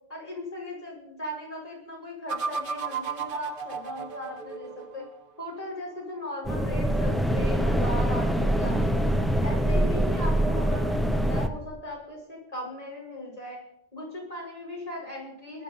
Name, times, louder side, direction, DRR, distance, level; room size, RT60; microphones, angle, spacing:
voice 1, 0.1-5.0 5.4-9.1 9.4-11.0 11.3-13.6 13.9-15.6, left 1 dB, 35° left, -3 dB, 6.2 m, -38 dB
sound 1, 2.3-5.2, right 5 dB, 55° right, 1.0 m, -34 dB
sound 2, 6.4-11.5, right 1 dB, ahead, 0.9 m, -24 dB
19.5 x 12.0 x 5.5 m, 0.77 s
omnidirectional pair, 1.1 m